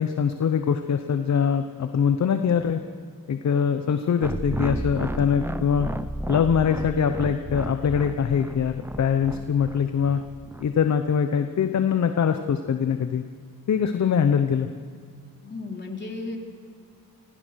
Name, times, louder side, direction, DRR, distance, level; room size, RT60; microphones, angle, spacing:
voice 1, 0.0-2.8 3.3-5.9 6.3-10.2 10.6-13.2 13.7-14.7, left 7 dB, 50° left, 8 dB, 1.0 m, -23 dB
sound 1, 4.2-10.6, right 1 dB, 5° right, 0.6 m, -33 dB
voice 2, 15.4-16.4, left 3 dB, 30° left, 1 dB, 3.3 m, -34 dB
26.0 x 16.5 x 6.4 m, 2.1 s
cardioid pair, 120°, 36 cm